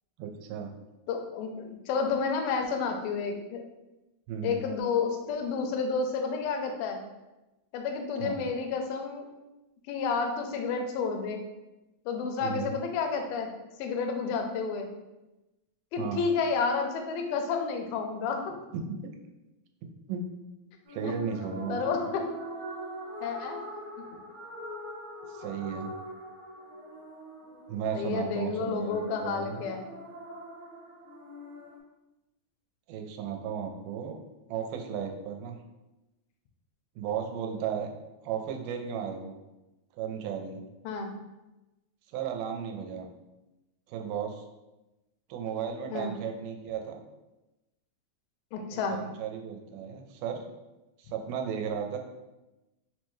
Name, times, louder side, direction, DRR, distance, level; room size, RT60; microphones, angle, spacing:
voice 1, 0.2-0.7 4.3-4.6 8.2-8.5 12.4-12.7 16.0-16.2 18.7-19.1 20.1-20.2 20.9-21.8 25.3-25.9 27.7-28.9 29.2-29.6 32.9-34.2 34.5-35.6 37.0-37.9 38.2-39.3 40.0-40.6 42.1-43.1 43.9-44.4 45.3-47.0 48.7-50.4 51.0-52.0, right 7 dB, 85° right, 3 dB, 2.3 m, -34 dB
voice 2, 1.1-3.6 4.4-7.0 7.7-9.3 9.9-11.4 12.1-13.5 13.8-14.9 15.9-18.4 21.0-21.1 21.7-22.2 23.2-23.6 27.9-29.9 40.9-41.1 45.9-46.1 48.5-49.0, left 5 dB, 85° left, 4 dB, 2.4 m, -30 dB
sound 1, 20.8-31.8, equal, 70° right, 1.8 m, -43 dB
5.7 x 2.2 x 3.0 m, 1.0 s
omnidirectional pair, 4.1 m